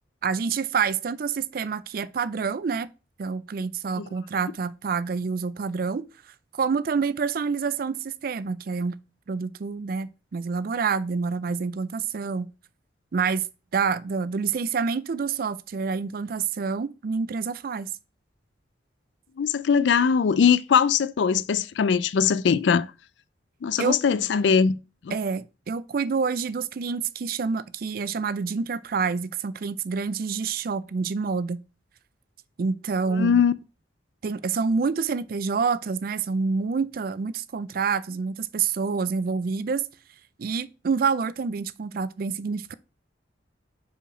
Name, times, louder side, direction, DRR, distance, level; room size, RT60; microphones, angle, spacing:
voice 1, 0.2-2.9 3.2-6.1 6.6-9.0 9.3-12.5 13.1-13.5 13.7-17.9 23.8-24.0 25.1-31.6 32.6-33.4 34.2-39.9 40.4-42.7, right 5 dB, 50° right, 0.4 m, -27 dB
voice 2, 19.4-22.9 23.6-24.8 25.0-25.2 33.1-33.5, left 6 dB, 70° left, 0.4 m, -21 dB
5.1 x 4.9 x 4.8 m
head